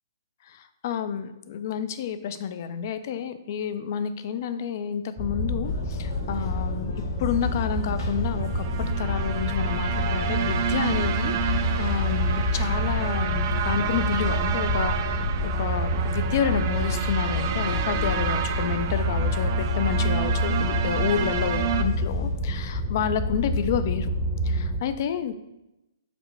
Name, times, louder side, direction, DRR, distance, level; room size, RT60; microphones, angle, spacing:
voice 1, 0.5-6.9 7.2-24.1 24.4-25.3, left 8 dB, 50° left, 11 dB, 0.3 m, -30 dB
sound 1, 5.2-24.8, left 1 dB, 5° left, 0.7 m, -27 dB
sound 2, 5.6-22.4, left 2 dB, 75° left, 1.0 m, -44 dB
sound 3, 8.3-21.8, right 8 dB, 45° right, 0.4 m, -30 dB
4.9 x 2.1 x 4.7 m, 0.93 s
hypercardioid pair, 140°, 2 cm